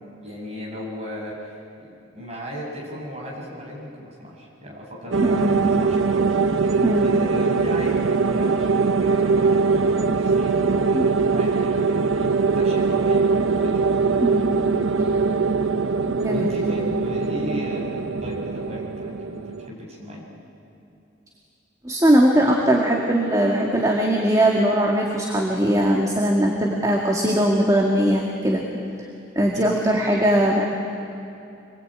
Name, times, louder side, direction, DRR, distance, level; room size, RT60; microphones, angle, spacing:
voice 1, 0.2-11.0 11.3-13.8 16.3-20.2 29.5-29.8, equal, 35° right, -3 dB, 7.2 m, -36 dB
sound 1, 5.1-19.7, right 4 dB, 85° right, 0.8 m, -21 dB
voice 2, 5.2-5.6 6.8-7.0 10.9-11.1 14.2-14.5 15.0-15.1 16.1-16.5 21.8-28.7 29.0-29.1 29.4-30.6, right 1 dB, 20° right, -2 dB, 2.0 m, -20 dB
26.0 x 21.0 x 9.0 m, 2.7 s
head